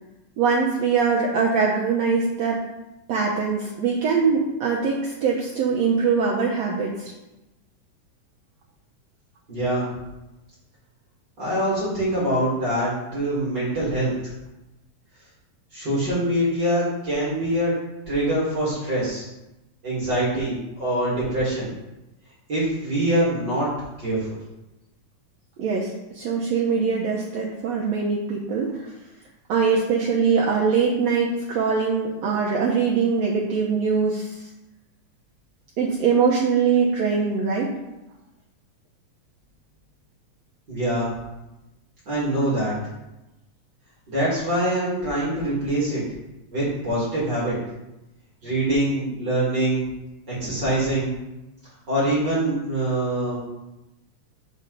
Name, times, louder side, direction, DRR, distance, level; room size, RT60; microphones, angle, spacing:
voice 1, 0.4-2.6 3.1-7.1 25.6-28.9 29.5-34.5 35.8-37.7, right 5 dB, 75° right, -3 dB, 1.6 m, -22 dB
voice 2, 9.5-9.9 11.4-14.3 15.7-17.7 18.1-19.3 19.8-21.7 22.5-23.7 24.0-24.4 40.7-41.1 42.1-42.7 44.1-46.0 46.5-47.6 48.4-49.9 50.3-51.1 51.9-53.4, right 1 dB, 35° right, -8 dB, 2.4 m, -24 dB
7.0 x 6.3 x 3.9 m, 0.98 s
omnidirectional pair, 4.0 m